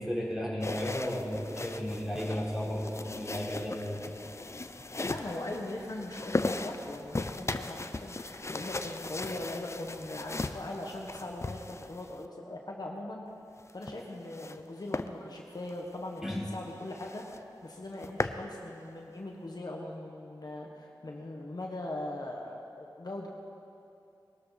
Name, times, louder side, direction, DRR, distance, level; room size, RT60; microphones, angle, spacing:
voice 1, 0.0-4.2 16.2-16.4, equal, 5° right, -5 dB, 3.9 m, -34 dB
sound 1, 0.6-12.3 13.6-14.6 14.9-15.1 15.6-15.8 16.2-16.3 16.5-16.6 16.9-17.4 17.8-18.4, left 2 dB, 35° left, 0.5 m, -37 dB
voice 2, 5.0-13.2 13.7-23.3, left 1 dB, 55° left, -1 dB, 1.4 m, -40 dB
20.5 x 13.0 x 4.2 m, 2.7 s
wide cardioid pair, 70°, 8 cm